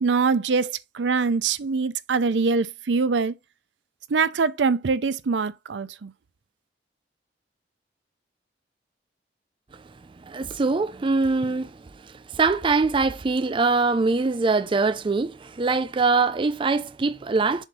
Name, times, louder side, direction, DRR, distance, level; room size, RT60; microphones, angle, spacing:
voice 1, 0.0-3.3 4.1-6.1, right 4 dB, 80° right, 0.5 m, -23 dB
voice 2, 10.2-17.6, right 4 dB, 30° right, 0.4 m, -23 dB
7.2 x 2.7 x 5.4 m
head